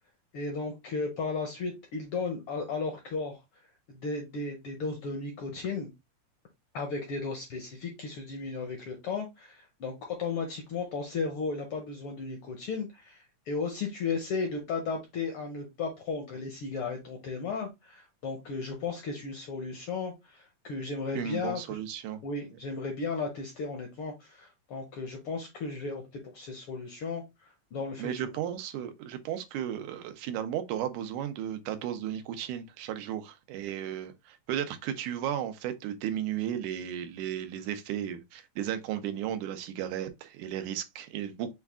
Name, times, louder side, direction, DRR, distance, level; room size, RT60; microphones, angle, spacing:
voice 1, 0.3-3.4 3.9-5.9 6.7-21.8 22.2-28.1, left 4 dB, 70° left, 1.3 m, -35 dB
voice 2, 21.1-22.2 28.0-41.5, right 10 dB, 90° right, 2.2 m, -34 dB
6.4 x 2.4 x 3.5 m
omnidirectional pair, 3.5 m